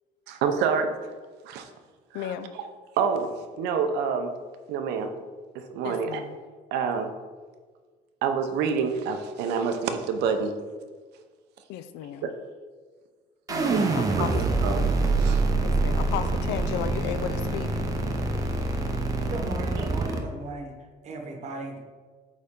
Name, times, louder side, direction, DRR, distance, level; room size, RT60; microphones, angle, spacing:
voice 1, 0.3-0.9 1.5-1.7 2.1-2.6 3.0-3.3 3.6-4.3 4.7-5.1 5.5-6.2 6.7-7.1 8.2-10.6 12.2-12.3 13.7-13.8 14.2-14.8 15.2-15.4, right 6 dB, 90° right, 6 dB, 0.7 m, -27 dB
voice 2, 2.1-2.5 5.8-6.4 11.7-12.3 13.5-14.3 15.6-17.7, left 9 dB, 85° left, 11 dB, 0.5 m, -34 dB
sound 1, 13.5-20.2, right 3 dB, 20° right, 0.6 m, -25 dB
voice 3, 19.3-20.7 21.0-21.9, right 2 dB, 40° right, 3 dB, 1.0 m, -36 dB
8.4 x 4.0 x 3.7 m, 1.5 s
cardioid pair, 165°, 17 cm